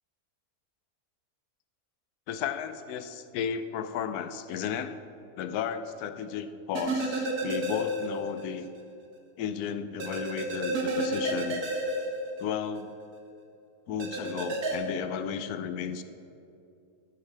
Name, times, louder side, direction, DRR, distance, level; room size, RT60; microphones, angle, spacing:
voice 1, 2.3-5.0 5.4-8.7 9.4-11.6 12.4-12.9 13.9-16.0, left 8 dB, 85° left, 10 dB, 1.1 m, -34 dB
sound 1, 6.7-8.4 8.7-8.8 10.0-12.8 14.0-14.7, right 1 dB, 80° right, 1.6 m, -31 dB
12.5 x 8.9 x 3.4 m, 2.6 s
omnidirectional pair, 1.6 m